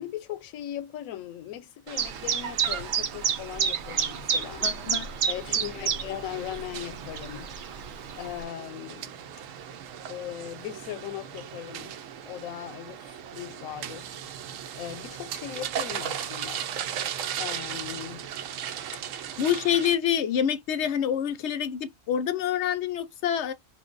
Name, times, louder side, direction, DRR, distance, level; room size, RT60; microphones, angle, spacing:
voice 1, 0.0-4.7 5.3-7.5 8.2-9.2 10.1-12.0 12.2-14.2 14.7-16.7 17.3-18.3, left 12 dB, 90° left, 1.0 m, -38 dB
sound 1, 1.9-19.9, right 9 dB, 75° right, 0.9 m, -38 dB
Chirp tweet, 2.0-8.4, right 7 dB, 55° right, 0.6 m, -30 dB
voice 2, 4.6-5.1 5.7-6.2 19.4-23.5, left 9 dB, 65° left, 0.8 m, -27 dB
3.0 x 2.2 x 3.7 m
omnidirectional pair, 1.4 m